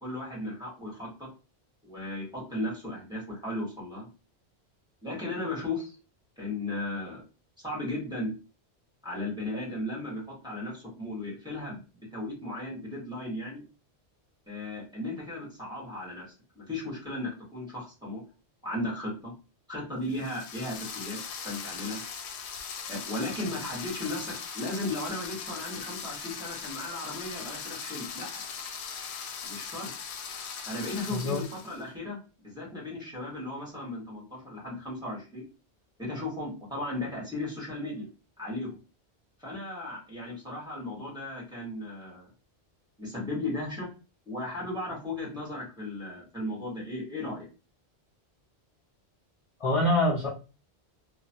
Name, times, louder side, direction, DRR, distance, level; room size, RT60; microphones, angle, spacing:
voice 1, 0.0-1.3 1.8-4.1 5.0-6.0 6.4-7.2 7.6-8.3 9.0-13.6 14.5-16.3 16.5-18.2 18.6-19.3 19.7-22.0 22.9-28.4 29.4-29.9 30.6-32.2 32.4-35.4 36.0-38.1 38.4-38.8 39.4-42.3 43.0-43.9 44.3-47.5, left 2 dB, 5° right, -5 dB, 1.5 m, -36 dB
sound 1, 20.1-31.8, left 6 dB, 80° left, 0.8 m, -39 dB
voice 2, 49.6-50.3, left 1 dB, 35° left, -4 dB, 0.7 m, -25 dB
3.0 x 2.3 x 2.7 m, 0.32 s
omnidirectional pair, 1.1 m